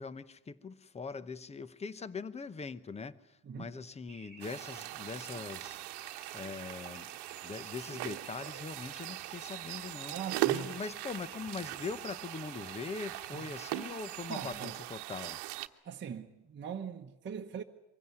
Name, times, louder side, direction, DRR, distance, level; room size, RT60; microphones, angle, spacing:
voice 1, 0.0-5.8 6.3-7.1 7.4-10.1 10.5-15.4, left 4 dB, 15° left, 0.8 m, -42 dB
voice 2, 3.4-3.8 10.1-10.8 13.3-13.5 14.3-14.8 15.8-17.6, right 7 dB, 30° right, 1.2 m, -41 dB
sound 1, 4.1-14.7, right 4 dB, ahead, 4.3 m, -54 dB
sound 2, 4.4-15.7, right 16 dB, 85° right, 1.1 m, -40 dB
24.0 x 16.5 x 9.7 m
cardioid pair, 140°, 39 cm